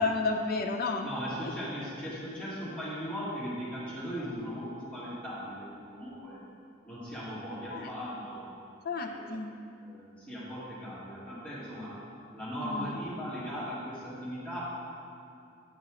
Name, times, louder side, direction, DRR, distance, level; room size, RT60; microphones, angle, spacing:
voice 1, 0.0-1.1 1.4-1.5 7.7-7.9 8.8-9.6 12.6-12.9, left 3 dB, 45° left, 3 dB, 0.6 m, -31 dB
voice 2, 1.0-5.6 5.9-6.4 6.8-8.5 9.0-9.2 9.8-12.0 12.3-14.7, equal, 5° left, -10 dB, 1.9 m, -38 dB
8.4 x 6.8 x 4.9 m, 2.5 s
head